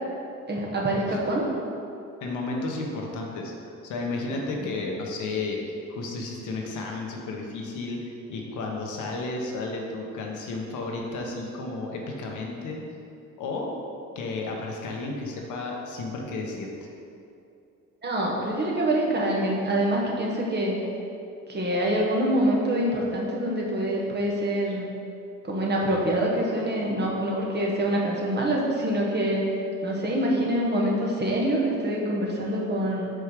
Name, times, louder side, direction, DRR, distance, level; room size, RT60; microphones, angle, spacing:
voice 1, 0.5-1.5 18.0-20.8 21.5-24.8 25.5-29.4 29.8-33.1, right 1 dB, 35° right, -3 dB, 1.3 m, -25 dB
voice 2, 2.2-5.6 5.9-8.0 8.3-12.8 13.4-13.7 14.1-16.7, left 3 dB, 80° left, 0 dB, 1.0 m, -32 dB
5.0 x 4.5 x 4.9 m, 2.6 s
cardioid pair, 90°, 30 cm